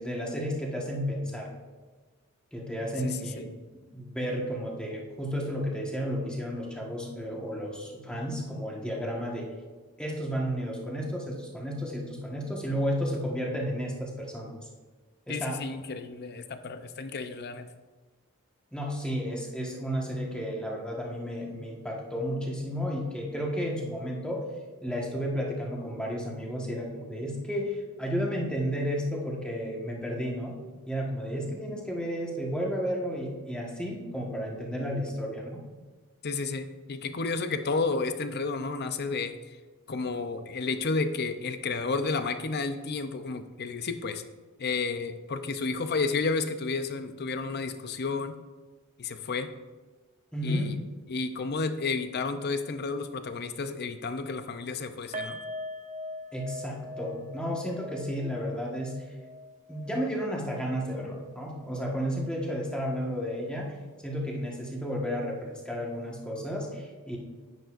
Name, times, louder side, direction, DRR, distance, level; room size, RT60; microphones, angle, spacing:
voice 1, 0.0-1.5 2.5-3.4 3.9-9.5 10.0-14.5 15.3-15.6 18.7-24.5 24.8-30.6 30.9-35.6 50.3-50.7 56.3-58.9 59.7-63.7 64.0-67.2, equal, 5° left, -2 dB, 1.4 m, -32 dB
voice 2, 3.0-3.5 15.3-17.7 36.2-39.6 39.9-44.2 44.6-48.3 49.0-49.5 50.4-50.7 51.1-55.4, left 4 dB, 45° left, 9 dB, 0.6 m, -31 dB
sound 1, 55.1-62.3 62.6-62.8 63.2-63.3, left 1 dB, 35° right, 0.9 m, -42 dB
10.5 x 9.1 x 2.5 m, 1.3 s
head